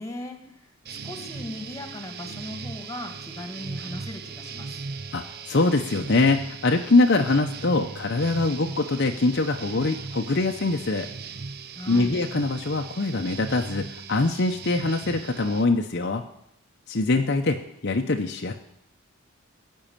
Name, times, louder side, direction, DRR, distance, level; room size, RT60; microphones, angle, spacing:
voice 1, 0.0-4.8 11.7-12.2, left 1 dB, 15° left, 5 dB, 1.8 m, -38 dB
sound 1, 0.8-15.6, right 4 dB, 45° right, 0.6 m, -38 dB
voice 2, 5.1-11.1 11.9-16.2 16.9-18.5, left 3 dB, 50° left, 4 dB, 0.7 m, -23 dB
16.0 x 5.5 x 8.9 m, 0.77 s
head